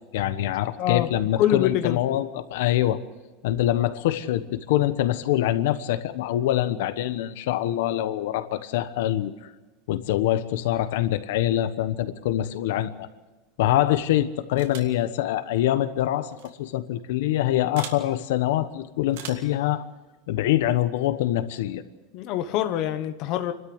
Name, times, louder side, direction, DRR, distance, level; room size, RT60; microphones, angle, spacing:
voice 1, 0.1-3.0 3.4-9.3 9.9-13.1 13.6-19.8 20.3-21.8, left 13 dB, 75° left, 11 dB, 1.1 m, -24 dB
voice 2, 1.4-2.0 22.1-23.5, left 11 dB, 40° left, 8 dB, 1.2 m, -24 dB
sound 1, 14.6-15.0 16.3-16.5 17.8-18.0 19.1-19.5, right 8 dB, 75° right, 2.7 m, -40 dB
30.0 x 12.5 x 7.9 m, 1.2 s
supercardioid pair, 175°, 0 cm